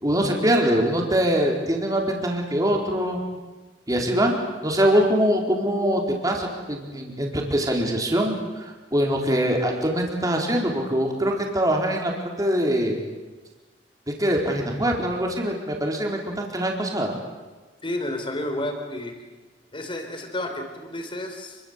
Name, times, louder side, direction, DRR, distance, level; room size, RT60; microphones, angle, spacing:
voice 1, 0.0-3.2 3.9-13.0 14.2-17.1, equal, 20° right, 1 dB, 4.4 m, -23 dB
voice 2, 17.8-19.1 19.7-21.6, left 1 dB, 30° left, 5 dB, 4.7 m, -31 dB
29.5 x 23.0 x 8.3 m, 1.3 s
head